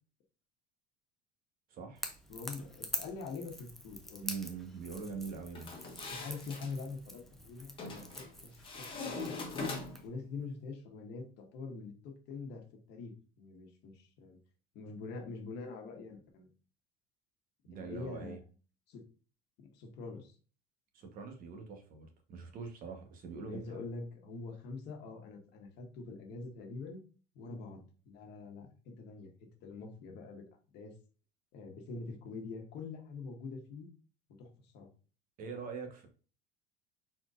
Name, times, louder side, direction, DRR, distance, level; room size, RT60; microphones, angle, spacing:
voice 1, 1.7-2.1 4.2-5.7 17.6-18.4 20.9-23.8 35.4-36.1, right 5 dB, 45° right, 4 dB, 1.1 m, -43 dB
Crackle / Crack, 2.0-10.1, left 1 dB, ahead, 0.5 m, -46 dB
voice 2, 2.3-4.3 6.1-9.7 10.0-14.4 14.7-16.5 17.7-18.5 18.9-19.0 19.6-20.3 23.4-27.0 27.3-30.5 30.7-30.9 31.5-33.9 34.4-34.9, left 4 dB, 55° left, 2 dB, 1.3 m, -45 dB
sound 1, 5.6-6.7 7.8-8.3 8.6-10.1, left 3 dB, 25° left, 1.2 m, -41 dB
4.3 x 4.1 x 2.5 m, 0.37 s
cardioid pair, 135°, 20 cm